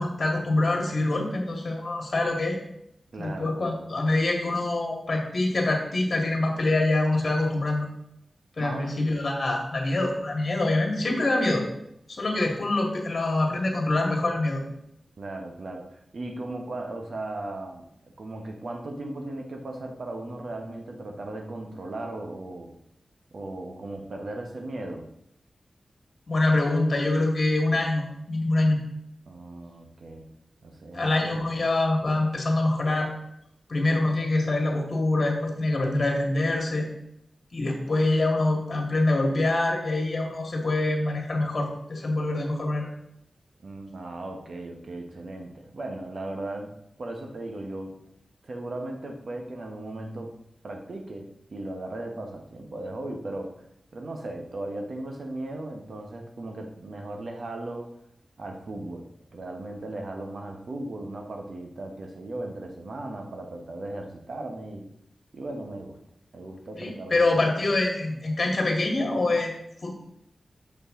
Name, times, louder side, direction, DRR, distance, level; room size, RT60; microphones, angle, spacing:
voice 1, 0.0-2.6 3.2-7.9 8.6-11.6 12.1-14.6 26.3-28.8 30.9-33.1 33.7-36.9 37.5-42.9 66.8-69.6 69.8-69.9, left 2 dB, 55° left, 1 dB, 1.8 m, -25 dB
voice 2, 3.1-3.8 8.6-8.9 15.2-17.8 18.2-22.7 23.3-25.1 29.3-30.2 30.6-31.3 43.6-46.7 47.0-48.0 48.4-50.4 50.6-53.5 53.9-57.9 58.4-59.1 59.3-64.9 65.3-66.0 66.3-67.3, right 2 dB, 70° right, 3 dB, 1.2 m, -37 dB
6.5 x 5.8 x 3.7 m, 0.79 s
cardioid pair, 60°, 0 cm